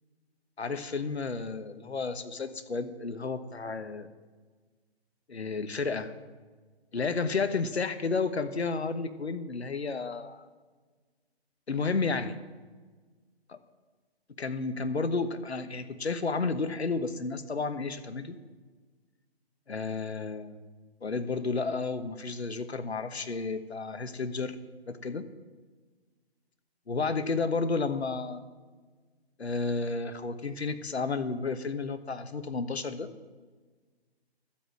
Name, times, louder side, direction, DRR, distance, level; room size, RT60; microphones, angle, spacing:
voice 1, 0.6-4.1 5.3-6.1 6.9-10.5 11.7-12.3 13.5-13.6 14.4-18.4 19.7-20.6 21.0-24.6 24.9-25.3 26.9-28.4 29.4-33.1, left 4 dB, 80° left, 10 dB, 1.2 m, -32 dB
12.5 x 8.7 x 7.8 m, 1.4 s
figure-of-eight pair, 130°, 32 cm